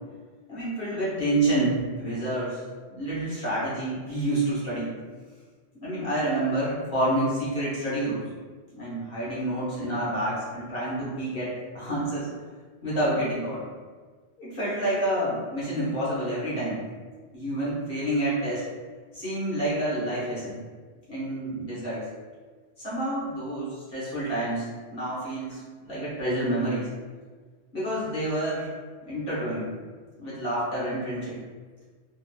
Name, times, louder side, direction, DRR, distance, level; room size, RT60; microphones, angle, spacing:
voice 1, 0.5-2.6 2.9-4.9 5.8-8.2 8.7-12.3 12.8-13.6 14.4-16.8 17.3-18.7 19.1-20.6 21.1-22.1 22.8-26.9 27.7-28.7 29.0-29.7 30.2-31.4, right 1 dB, 55° left, -9 dB, 1.3 m, -28 dB
3.6 x 2.4 x 2.2 m, 1.5 s
omnidirectional pair, 1.1 m